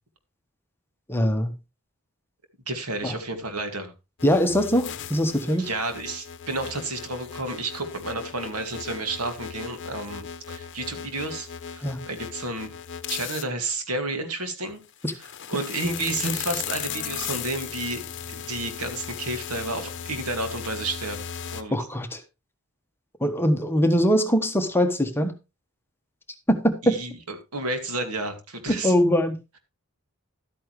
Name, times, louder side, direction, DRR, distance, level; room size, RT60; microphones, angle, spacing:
voice 1, 1.1-1.5 3.0-3.2 4.2-5.7 11.8-12.0 15.0-15.1 21.7-22.2 23.2-25.3 26.5-27.0 28.7-29.4, equal, 10° left, 1.2 m, -22 dB
voice 2, 2.7-3.9 5.5-12.7 13.1-14.8 15.5-18.0 18.3-21.3 21.5-21.8 26.8-27.1 27.5-28.9, right 2 dB, 85° right, 2.2 m, -31 dB
sound 1, 4.2-13.4 14.9-21.6, left 8 dB, 60° left, 0.8 m, -37 dB
12.5 x 8.7 x 3.2 m
head